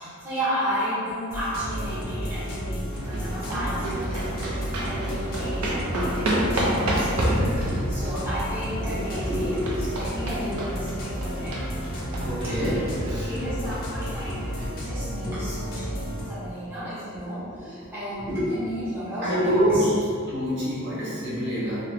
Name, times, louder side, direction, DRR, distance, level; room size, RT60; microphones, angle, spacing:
voice 1, 0.0-11.5 12.4-12.9 13.2-19.9, equal, 10° right, -13 dB, 0.9 m, -32 dB
sound 1, 1.3-16.3, equal, 45° left, 0.5 m, -32 dB
sound 2, 2.9-14.7, right 1 dB, 80° right, 0.5 m, -30 dB
voice 2, 12.2-13.3 19.2-19.9 20.3-21.8, equal, 55° right, -10 dB, 0.9 m, -26 dB
2.5 x 2.0 x 3.2 m, 2.4 s
head